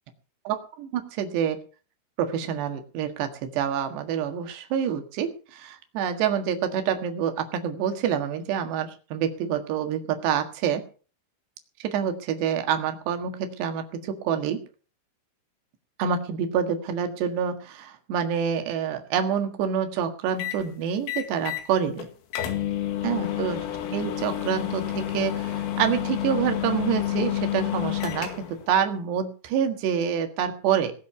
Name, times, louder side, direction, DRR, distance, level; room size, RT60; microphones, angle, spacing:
voice 1, 0.5-1.6 2.2-10.8 11.8-14.6 16.0-22.1 23.0-23.6 23.9-30.9, right 8 dB, 65° right, 6 dB, 3.5 m, -27 dB
sound 1, 20.4-20.6 21.1-21.7 22.0-22.1 22.3-28.6, left 12 dB, 85° left, 4.6 m, -29 dB
19.0 x 6.9 x 6.9 m, 0.38 s
omnidirectional pair, 5.7 m